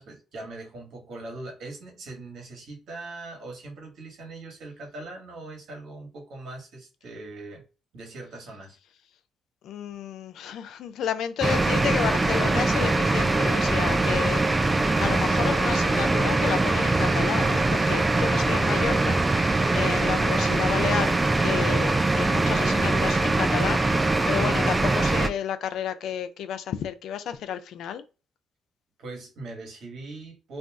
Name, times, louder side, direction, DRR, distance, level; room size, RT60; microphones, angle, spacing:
voice 1, 0.0-7.6 7.9-8.8 29.0-30.6, right 2 dB, 70° right, 1.3 m, -41 dB
voice 2, 9.6-14.5 15.0-21.1 21.4-28.0, left 9 dB, 80° left, 0.4 m, -31 dB
sound 1, 11.4-25.3, right 2 dB, 20° right, 0.4 m, -22 dB
2.5 x 2.3 x 3.4 m
cardioid pair, 90°, 0 cm